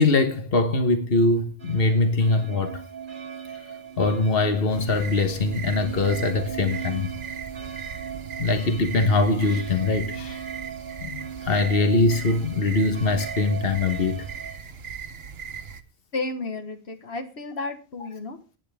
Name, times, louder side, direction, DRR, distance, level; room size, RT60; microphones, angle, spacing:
voice 1, 0.0-2.8 4.0-7.1 8.4-10.4 11.0-14.2 18.0-18.1, left 3 dB, 65° left, 1.6 m, -22 dB
sound 1, 1.6-14.6, right 8 dB, 50° right, 1.2 m, -38 dB
sound 2, 4.7-15.8, right 6 dB, 75° right, 1.2 m, -38 dB
voice 2, 16.1-18.4, left 3 dB, 80° left, 1.8 m, -32 dB
18.0 x 9.4 x 3.5 m
omnidirectional pair, 1.0 m